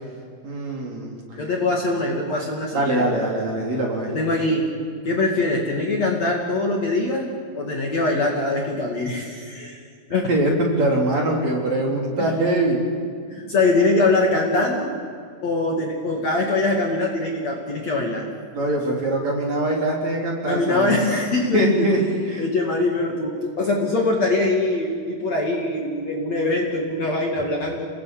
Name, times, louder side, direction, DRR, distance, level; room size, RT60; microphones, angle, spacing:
voice 1, 0.4-1.4 2.3-2.4 2.7-4.1 10.3-12.8 13.4-13.5 18.5-21.0 21.5-22.0 22.3-22.5, right 1 dB, 35° right, 0 dB, 4.1 m, -23 dB
voice 2, 1.4-3.1 4.1-4.7 5.0-9.8 10.1-10.3 13.3-14.9 15.4-18.3 20.5-21.9 22.4-27.9, left 2 dB, 45° left, 0 dB, 2.5 m, -23 dB
28.0 x 19.5 x 8.7 m, 2.1 s
omnidirectional pair, 6.0 m